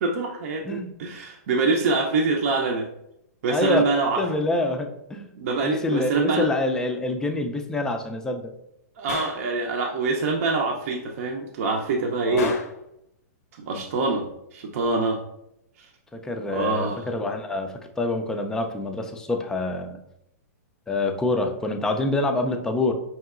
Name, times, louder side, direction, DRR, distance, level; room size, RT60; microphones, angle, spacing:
voice 1, 0.0-2.8 3.4-4.2 5.4-6.5 9.0-12.5 13.6-14.3 14.5-15.2 16.5-17.1, right 3 dB, 60° right, 0 dB, 0.5 m, -25 dB
voice 2, 3.5-3.9 4.2-5.3 5.6-8.5 12.3-12.6 16.1-20.0 20.9-22.9, left 2 dB, 5° left, 5 dB, 0.3 m, -26 dB
Gunshot gunfire, 9.1-9.5 12.4-12.8, left 4 dB, 65° left, 0.6 m, -33 dB
5.3 x 2.8 x 2.4 m, 0.80 s
hypercardioid pair, 145°, 9 cm